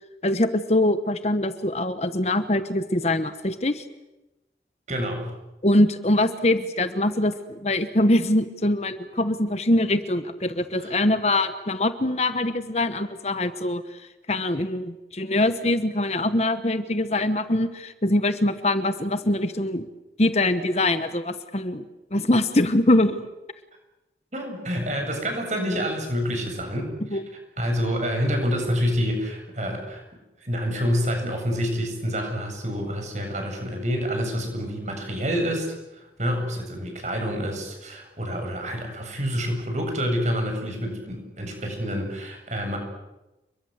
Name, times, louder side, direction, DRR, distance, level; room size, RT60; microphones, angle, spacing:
voice 1, 0.2-3.8 5.6-19.9 20.2-21.8 22.1-23.2 27.1-27.2, left 1 dB, 35° left, 10 dB, 1.2 m, -23 dB
voice 2, 4.9-5.3 10.8-10.9 24.3-27.2 27.6-30.0 30.4-42.8, equal, 40° right, 3 dB, 7.9 m, -27 dB
30.0 x 22.5 x 8.2 m, 1.0 s
head